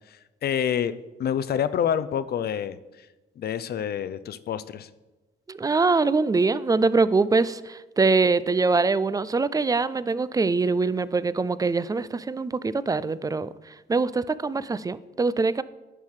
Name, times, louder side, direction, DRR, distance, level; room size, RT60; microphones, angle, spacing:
voice 1, 0.4-0.9 1.2-2.8 3.4-4.9, left 9 dB, 55° left, 15 dB, 0.5 m, -27 dB
voice 2, 5.5-13.5 13.9-15.6, right 4 dB, 20° right, 16 dB, 0.4 m, -23 dB
10.5 x 5.6 x 4.8 m, 1.1 s
cardioid pair, 90°, 20 cm